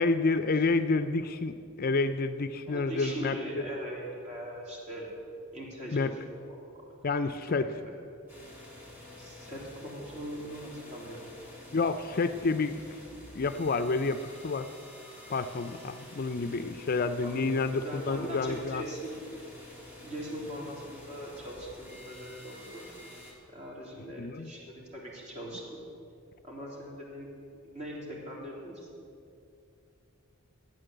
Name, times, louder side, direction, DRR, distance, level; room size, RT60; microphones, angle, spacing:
voice 1, 0.0-3.4 5.9-6.1 7.0-7.7 11.7-12.7 13.3-14.7 15.3-18.8 24.2-24.5, left 3 dB, 45° left, 11 dB, 0.4 m, -29 dB
voice 2, 2.7-5.1 5.5-6.1 6.4-6.8 7.5-7.9 9.2-11.3 17.2-17.6 17.8-19.1 20.0-22.8 23.5-25.6 26.4-27.3 27.7-28.9, equal, 30° right, -3 dB, 3.4 m, -41 dB
sound 1, 8.3-23.3, left 1 dB, 10° right, 3.2 m, -49 dB
13.0 x 9.1 x 7.9 m, 2.5 s
head